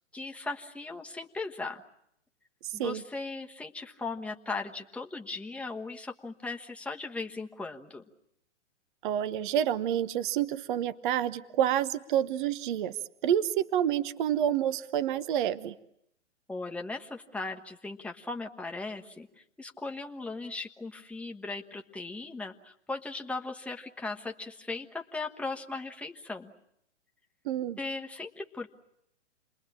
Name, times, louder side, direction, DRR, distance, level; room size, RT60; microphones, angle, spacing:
voice 1, 0.1-1.8 2.7-8.0 16.5-19.3 19.6-26.5 27.8-28.7, left 3 dB, 5° left, 2 dB, 1.3 m, -38 dB
voice 2, 2.6-3.0 9.0-12.9 13.2-15.7 27.4-27.8, right 10 dB, 45° right, 14 dB, 1.1 m, -28 dB
29.5 x 22.0 x 8.7 m, 0.78 s
figure-of-eight pair, 120°, 36 cm